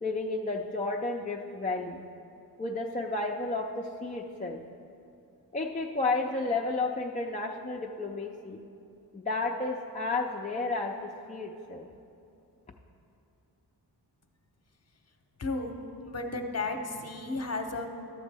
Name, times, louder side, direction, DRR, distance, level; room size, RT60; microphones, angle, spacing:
voice 1, 0.0-2.0 2.6-4.6 5.5-8.6 9.1-11.9, left 3 dB, 20° left, 0 dB, 0.4 m, -32 dB
voice 2, 15.4-15.8 16.0-17.9, left 3 dB, 35° left, 5 dB, 0.8 m, -33 dB
12.0 x 7.2 x 3.4 m, 2.7 s
cardioid pair, 85°, 42 cm